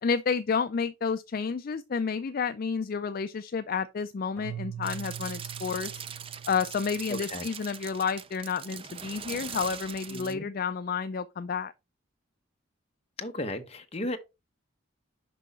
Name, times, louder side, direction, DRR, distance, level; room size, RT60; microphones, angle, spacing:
voice 1, 0.0-6.0 6.5-11.7, left 5 dB, 45° left, 0.4 m, -30 dB
Keyboard (musical), 4.4-7.5, right 9 dB, 10° left, 1.6 m, -42 dB
sound 1, 4.8-10.3, right 7 dB, 25° right, 0.4 m, -41 dB
voice 2, 7.1-7.5 10.1-10.5 13.2-14.2, left 1 dB, 30° left, 0.9 m, -35 dB
6.2 x 5.5 x 4.2 m
head